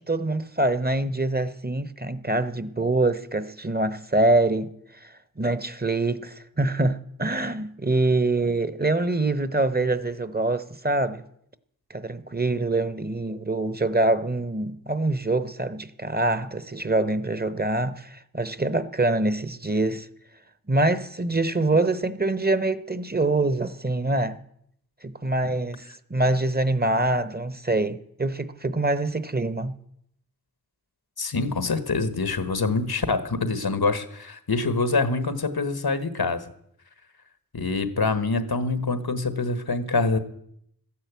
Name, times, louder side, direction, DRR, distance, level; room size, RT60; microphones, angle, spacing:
voice 1, 0.0-4.7 5.0-11.2 11.9-20.1 20.7-24.4 25.0-25.8 26.1-29.7, right 2 dB, 25° right, 0.9 m, -25 dB
voice 2, 31.2-36.4 37.5-40.2, left 3 dB, 90° left, 1.3 m, -25 dB
14.0 x 10.5 x 8.2 m
wide cardioid pair, 50°, 36 cm